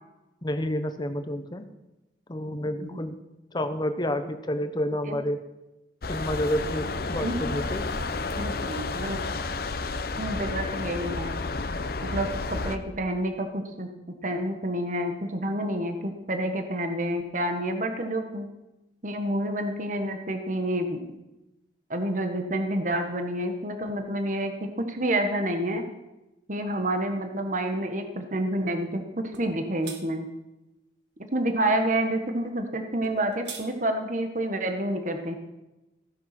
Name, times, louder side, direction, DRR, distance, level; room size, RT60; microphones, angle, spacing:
voice 1, 0.4-1.7 2.3-3.1 3.5-5.4 6.1-7.8, equal, 25° left, 9 dB, 0.9 m, -29 dB
sound 1, 6.0-12.8, left 3 dB, 55° left, 0.9 m, -31 dB
voice 2, 8.4-9.2 10.2-11.4 12.0-13.9 14.2-18.5 19.0-21.0 21.9-25.8 26.5-30.3 31.3-35.4, right 1 dB, 45° right, 6 dB, 1.4 m, -28 dB
sound 2, 29.3-29.5 29.8-30.0 33.0-33.7, right 6 dB, 85° right, 1.8 m, -40 dB
16.0 x 10.5 x 6.0 m, 0.99 s
head